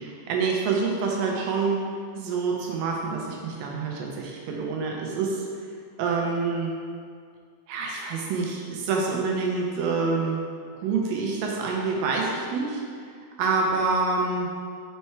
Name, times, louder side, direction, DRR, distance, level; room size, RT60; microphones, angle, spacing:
voice 1, 0.0-1.8 2.2-5.5 6.0-6.7 7.7-10.4 10.8-13.1 13.4-14.5, right 4 dB, 80° right, -1 dB, 2.2 m, -27 dB
5.6 x 4.3 x 4.5 m, 2.1 s
omnidirectional pair, 4.4 m